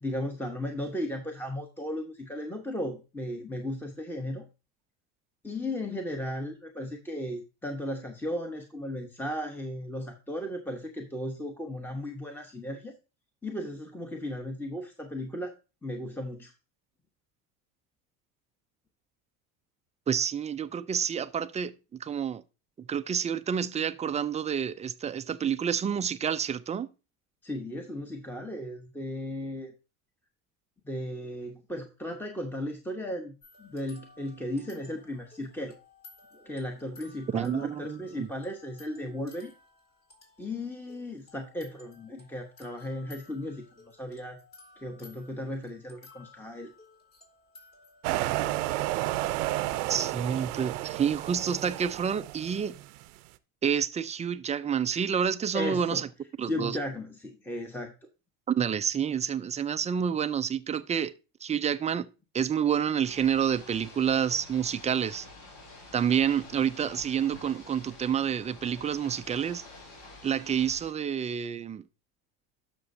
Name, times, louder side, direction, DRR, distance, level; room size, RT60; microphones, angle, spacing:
voice 1, 0.0-4.5 5.4-12.9 13.4-15.5 15.8-16.5 27.4-29.7 30.8-35.8 36.3-39.5 40.4-44.4 44.8-46.7 55.5-56.0 56.5-58.1, left 1 dB, 5° left, 1.1 m, -36 dB
voice 2, 20.1-22.4 22.8-26.9 37.3-38.3 49.9-52.8 53.6-56.1 56.4-56.8 58.5-61.1 61.4-62.1 62.3-65.3 65.9-69.7 70.2-71.8, right 8 dB, 15° right, 0.4 m, -29 dB
sound 1, 33.4-48.3, left 4 dB, 35° left, 4.1 m, -56 dB
sound 2, 48.0-53.0, right 16 dB, 75° right, 0.7 m, -31 dB
Ocean / Boat Water vehicle, 63.0-70.9, left 2 dB, 60° left, 4.4 m, -49 dB
12.5 x 6.0 x 2.7 m
hypercardioid pair, 85°, 45 cm